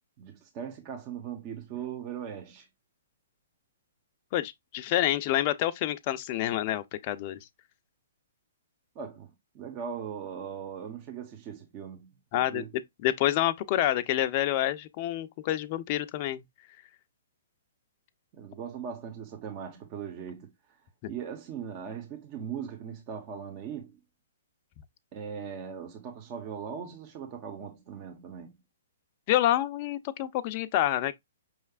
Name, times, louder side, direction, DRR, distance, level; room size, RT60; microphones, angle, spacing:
voice 1, 0.2-2.7 8.9-12.7 18.3-20.5 21.1-24.0 25.1-28.5, right 7 dB, 35° right, 1.1 m, -39 dB
voice 2, 4.3-7.4 12.3-16.4 21.0-21.1 29.3-31.1, left 13 dB, 40° left, 0.5 m, -28 dB
5.6 x 3.3 x 2.3 m
hypercardioid pair, 135°, 0 cm